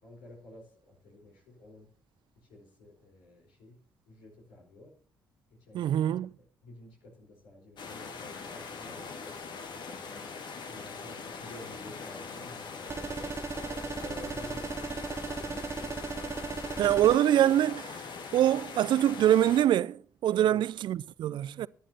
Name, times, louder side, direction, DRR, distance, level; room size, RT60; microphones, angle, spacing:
voice 1, 0.0-1.9 2.3-3.8 4.1-4.9 5.5-5.9 6.4-9.4 9.9-13.4 14.0-16.0 16.8-17.0 20.4-20.6, left 1 dB, 75° left, 4.7 m, -50 dB
voice 2, 5.7-6.3 16.8-17.9 18.3-21.7, right 11 dB, 60° right, 0.5 m, -24 dB
sound 1, 7.8-19.7, left 5 dB, 60° left, 2.0 m, -42 dB
sound 2, 12.9-17.2, right 4 dB, 30° right, 0.8 m, -37 dB
18.0 x 11.0 x 2.9 m
hypercardioid pair, 40°, 9 cm